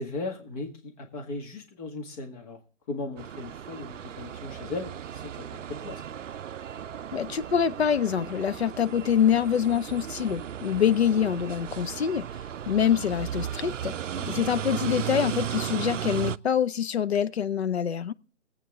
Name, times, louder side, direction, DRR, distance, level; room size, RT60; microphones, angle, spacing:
voice 1, 0.0-2.6 2.9-6.0 14.1-14.5, left 3 dB, 30° left, 1.9 m, -37 dB
sound 1, 3.2-16.4, right 9 dB, 75° right, 0.5 m, -35 dB
voice 2, 7.1-12.3 12.7-13.9 14.3-18.1, left 8 dB, 55° left, 0.7 m, -25 dB
21.0 x 8.4 x 3.6 m
figure-of-eight pair, 145°, 38 cm